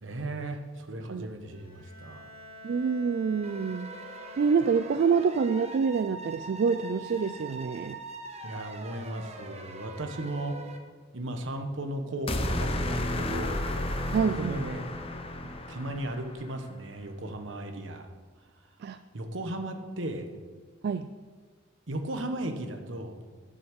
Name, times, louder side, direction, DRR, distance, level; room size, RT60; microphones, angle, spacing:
voice 1, 0.0-2.3 8.4-10.6 11.1-13.7 14.4-15.0 15.7-18.1 19.1-20.3 21.9-23.2, right 1 dB, 75° right, 6 dB, 1.2 m, -36 dB
Bowed string instrument, 1.5-5.6, equal, 50° left, 2.2 m, -49 dB
voice 2, 2.6-3.9 4.4-8.0 14.1-14.6 18.8-19.0 20.8-21.1, right 5 dB, 55° right, 11 dB, 0.3 m, -26 dB
sound 1, 3.4-10.8, right 2 dB, 35° right, 1.1 m, -43 dB
sound 2, 12.3-16.5, left 1 dB, 30° left, 0.8 m, -32 dB
9.7 x 6.0 x 7.3 m, 1.5 s
head